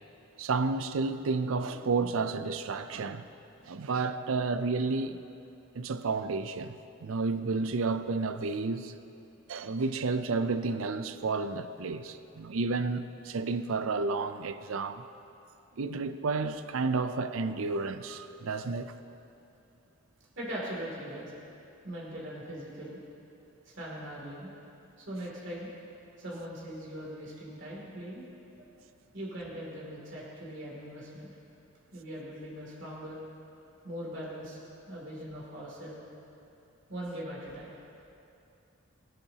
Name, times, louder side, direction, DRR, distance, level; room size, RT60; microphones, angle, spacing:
voice 1, 0.4-3.3 3.7-5.2 5.8-6.8 7.0-8.9 9.5-15.0 15.8-18.9, right 4 dB, 80° right, 0.5 m, -31 dB
voice 2, 20.4-21.3 21.8-23.0 23.7-24.5 25.0-25.7 26.2-28.3 29.1-31.3 31.9-33.2 33.8-34.6 34.9-36.0 36.9-37.7, equal, 60° right, 2.7 m, -40 dB
23.0 x 7.7 x 2.8 m
head